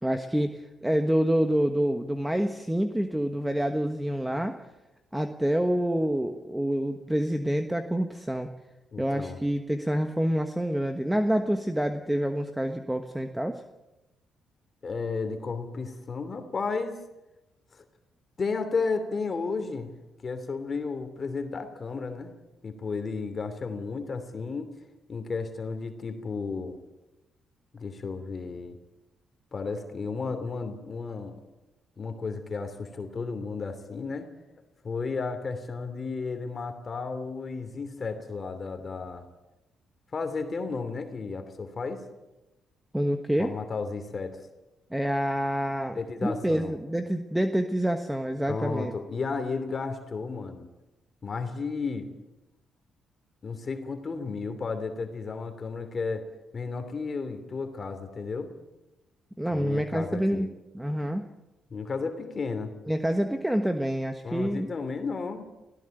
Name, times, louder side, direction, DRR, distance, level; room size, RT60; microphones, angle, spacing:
voice 1, 0.0-4.6 5.1-8.5 9.0-13.6 42.9-43.5 44.9-48.9 59.4-60.5 60.7-61.3 62.9-64.7, equal, 5° right, 7 dB, 1.3 m, -27 dB
voice 2, 8.9-9.4 14.8-17.0 17.7-17.8 18.4-19.9 20.2-22.3 22.6-24.7 25.1-26.8 27.7-28.8 29.5-31.4 32.0-34.3 34.8-39.2 40.1-42.0 43.4-44.4 45.9-46.8 48.5-50.7 51.2-52.1 53.4-56.2 56.5-58.5 59.5-60.5 61.7-62.7 64.2-65.5, left 4 dB, 40° left, 7 dB, 2.9 m, -33 dB
19.0 x 17.0 x 9.1 m, 1.0 s
cardioid pair, 90°, 0 cm